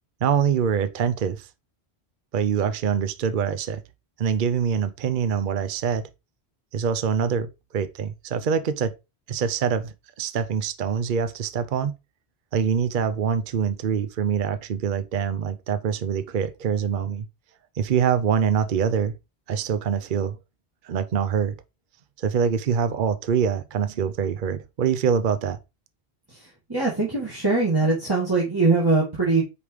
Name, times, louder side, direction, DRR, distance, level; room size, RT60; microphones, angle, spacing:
voice 1, 0.2-1.5 2.3-3.8 4.2-6.1 6.7-8.9 9.3-11.9 12.5-17.3 17.8-19.2 19.5-20.4 20.8-21.5 22.2-25.6, right 7 dB, 55° right, 0.8 m, -24 dB
voice 2, 26.7-29.4, right 3 dB, 20° right, 2.3 m, -21 dB
5.2 x 4.9 x 4.8 m
omnidirectional pair, 1.1 m